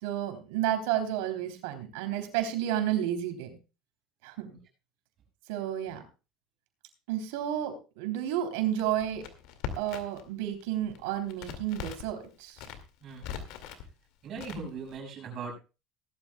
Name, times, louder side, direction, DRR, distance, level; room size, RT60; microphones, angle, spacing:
voice 1, 0.0-3.6 4.2-4.6 5.5-6.0 7.1-9.2 9.8-12.6, right 11 dB, 85° right, 6 dB, 3.3 m, -31 dB
Crackle, 8.8-10.3 10.5-12.1 12.5-13.8 14.4-15.0, left 8 dB, 70° left, 2.2 m, -40 dB
voice 2, 14.2-15.6, right 4 dB, 45° right, 2 dB, 6.4 m, -39 dB
18.5 x 12.0 x 2.3 m, 0.31 s
cardioid pair, 130°, 0 cm